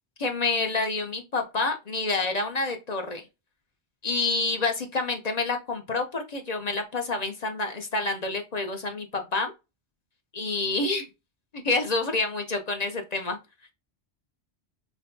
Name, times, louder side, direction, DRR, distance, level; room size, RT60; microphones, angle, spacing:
voice 1, 0.2-3.3 4.0-9.5 10.3-11.1 11.5-13.4, left 3 dB, 45° left, 0.7 m, -28 dB
5.8 x 2.2 x 2.6 m
omnidirectional pair, 1.1 m